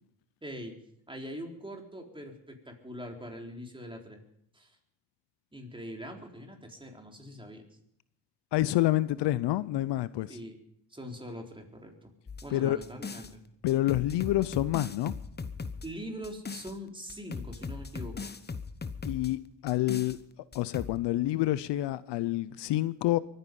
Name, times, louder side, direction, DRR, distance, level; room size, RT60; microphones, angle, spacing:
voice 1, 0.4-0.8 1.1-4.2 4.5-4.8 5.5-7.7 10.3-10.6 10.9-12.1 12.4-13.4 15.8-18.3, equal, 10° right, 3.9 m, -42 dB
voice 2, 8.5-10.4 12.5-12.8 13.6-15.1 19.0-20.2 20.5-23.2, left 15 dB, 75° left, 0.6 m, -28 dB
sound 1, 12.3-13.3 13.7-16.7 17.1-19.3 19.7-20.2 20.5-21.0, left 4 dB, 25° left, 1.0 m, -39 dB
23.0 x 9.8 x 5.4 m
supercardioid pair, 70°, 43 cm